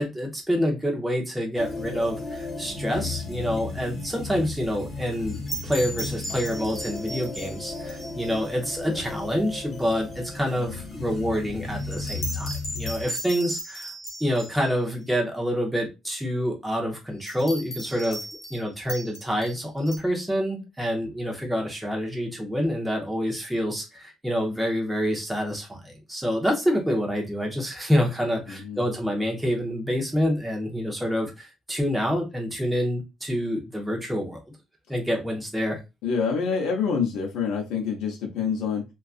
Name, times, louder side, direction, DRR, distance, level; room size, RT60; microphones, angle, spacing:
voice 1, 0.0-13.9 14.2-18.2 18.5-34.4 34.9-35.8, equal, 5° right, 0 dB, 0.5 m, -27 dB
sound 1, 1.6-13.1, left 4 dB, 20° left, 1.2 m, -35 dB
sound 2, 5.3-8.4 8.7-8.8 11.7-14.7 17.3-18.6 18.9-20.0, right 1 dB, 45° left, 1.0 m, -37 dB
voice 2, 28.5-28.8 36.0-38.8, left 6 dB, 80° left, 0 dB, 0.6 m, -26 dB
2.5 x 2.3 x 2.4 m, 0.24 s
cardioid pair, 175°, 0 cm